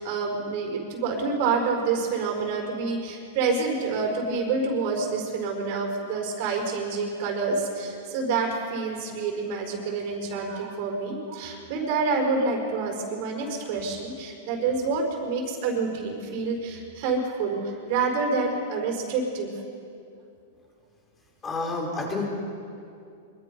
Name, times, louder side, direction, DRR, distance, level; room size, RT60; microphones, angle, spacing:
voice 1, 0.0-19.5, right 4 dB, 50° right, 1 dB, 5.1 m, -27 dB
voice 2, 21.4-22.3, left 3 dB, 20° left, 0 dB, 5.2 m, -29 dB
25.5 x 23.5 x 5.5 m, 2.5 s
supercardioid pair, 150°, 0 cm